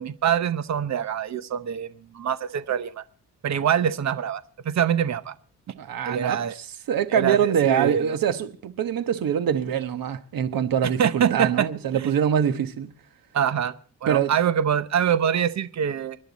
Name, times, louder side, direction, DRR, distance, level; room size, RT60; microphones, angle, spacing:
voice 1, 0.0-3.0 3.4-5.3 6.0-6.5 7.1-8.1 11.0-11.7 11.9-12.1 13.3-13.7 14.0-16.2, right 8 dB, 55° right, 0.9 m, -24 dB
voice 2, 5.8-6.4 6.9-12.9 14.1-14.3, right 8 dB, 85° right, 1.2 m, -24 dB
25.0 x 11.5 x 4.1 m
wide cardioid pair, 160°, 34 cm